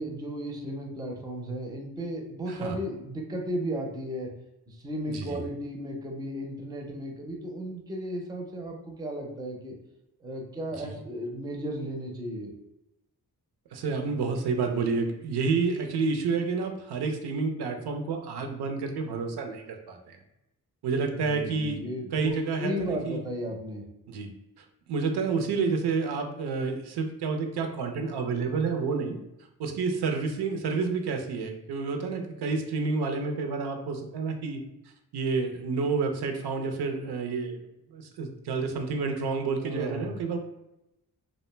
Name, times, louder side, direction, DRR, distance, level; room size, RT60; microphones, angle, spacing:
voice 1, 0.0-4.3 4.7-9.7 10.2-12.5 21.1-23.8 39.6-40.2, equal, 10° right, 1 dB, 0.4 m, -35 dB
voice 2, 2.5-2.8 5.1-5.4 10.8-10.9 13.7-20.2 20.8-21.8 22.1-23.2 24.1-24.3 24.9-29.2 29.6-34.6 35.1-37.6 37.9-40.4, right 4 dB, 80° right, 4 dB, 0.5 m, -29 dB
2.5 x 2.0 x 3.1 m, 0.89 s
cardioid pair, 100°, 38 cm